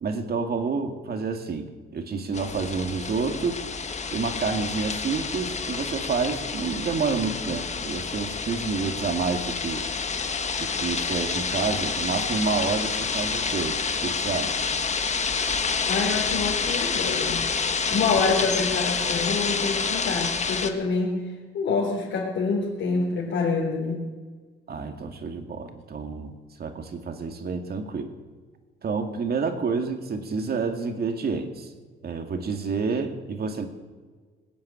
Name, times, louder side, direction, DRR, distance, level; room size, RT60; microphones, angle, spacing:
voice 1, 0.0-3.6 4.1-9.8 10.6-14.6 24.7-28.1 28.8-31.7 32.0-33.7, right 4 dB, 50° right, 6 dB, 2.2 m, -29 dB
sound 1, 2.3-20.7, left 5 dB, 35° left, 1.4 m, -28 dB
voice 2, 15.9-17.5 17.9-21.2 21.5-24.1, left 4 dB, 70° left, -4 dB, 3.8 m, -26 dB
20.0 x 7.7 x 9.0 m, 1.5 s
cardioid pair, 90°, 20 cm